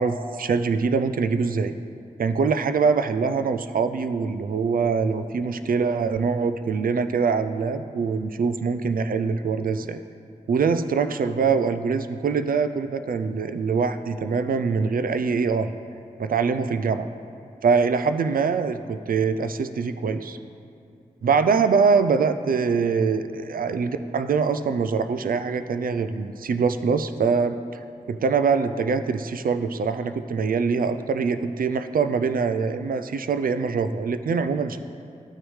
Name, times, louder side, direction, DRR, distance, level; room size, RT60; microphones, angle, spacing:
voice 1, 0.0-1.7 2.2-10.0 10.5-15.7 16.2-17.1 17.6-20.4 21.2-27.6 28.1-34.8, right 5 dB, 75° right, 9 dB, 0.4 m, -23 dB
12.5 x 6.1 x 3.2 m, 2.4 s
cardioid pair, 50°, 15 cm